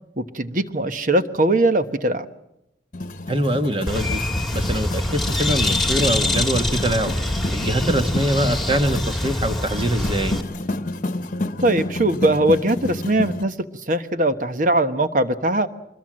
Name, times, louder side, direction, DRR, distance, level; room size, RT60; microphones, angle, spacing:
voice 1, 0.2-2.2 11.6-13.5 13.9-15.7, right 1 dB, 45° right, 10 dB, 1.3 m, -20 dB
sound 1, 2.9-13.4, left 2 dB, 45° left, 1.1 m, -30 dB
voice 2, 3.3-4.2 4.5-7.1 7.5-10.4, right 1 dB, 30° right, 7 dB, 1.6 m, -23 dB
Bird, 3.9-10.4, left 1 dB, ahead, 2.2 m, -24 dB
25.0 x 22.0 x 7.6 m, 0.84 s
head